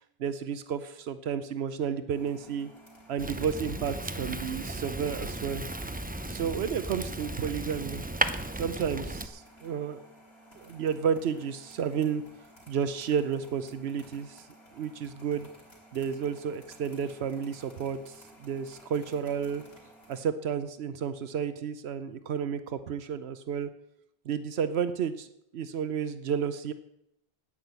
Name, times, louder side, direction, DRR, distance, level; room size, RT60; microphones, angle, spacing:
voice 1, 0.2-2.7 3.1-5.6 6.3-8.0 8.5-10.0 10.6-12.2 12.7-14.5 14.7-15.5 15.9-19.6 20.1-23.7 24.2-25.3 25.5-26.7, right 7 dB, 85° right, 12 dB, 1.0 m, -31 dB
sound 1, 2.1-20.2, equal, 85° left, 3.5 m, -55 dB
Fire, 3.2-9.3, right 1 dB, 10° right, 0.5 m, -35 dB
9.9 x 9.2 x 8.1 m, 0.82 s
omnidirectional pair, 1.0 m